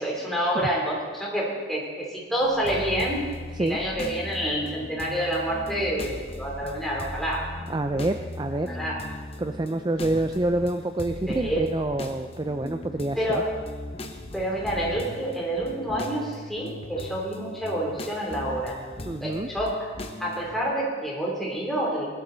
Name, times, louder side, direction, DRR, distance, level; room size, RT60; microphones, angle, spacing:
voice 1, 0.0-3.2 3.6-7.5 8.7-9.0 11.3-11.7 13.1-13.5 14.3-18.8 19.2-19.9 20.2-22.1, right 1 dB, ahead, -4 dB, 3.1 m, -28 dB
sound 1, 2.4-20.6, left 1 dB, 30° left, 1.0 m, -39 dB
voice 2, 7.7-8.8 9.4-13.4 19.1-19.5, right 2 dB, 20° right, 7 dB, 0.4 m, -27 dB
20.5 x 12.0 x 4.0 m, 1.5 s
head